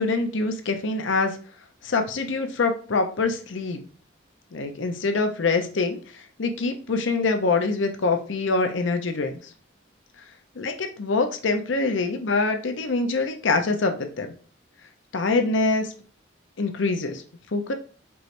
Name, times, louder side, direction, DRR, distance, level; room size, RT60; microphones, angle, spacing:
voice 1, 0.0-1.4 1.8-3.8 4.5-6.0 6.4-9.3 10.6-14.3 15.1-15.9 16.6-17.2 17.5-17.7, left 3 dB, 75° left, 6 dB, 0.6 m, -24 dB
4.6 x 3.2 x 2.6 m, 0.41 s
head